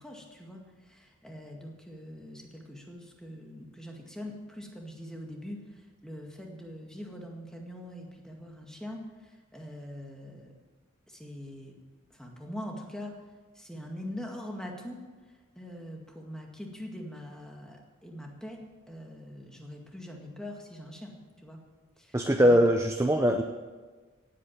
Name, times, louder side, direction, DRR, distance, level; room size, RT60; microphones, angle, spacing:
voice 1, 0.0-10.5 11.1-11.7 12.1-13.2 13.6-15.0 15.6-21.2 21.4-21.6 22.0-22.2 22.4-22.6, equal, 5° left, 0 dB, 2.0 m, -43 dB
voice 2, 22.1-23.4, equal, 15° right, 5 dB, 0.6 m, -22 dB
17.5 x 8.7 x 7.5 m, 1.4 s
head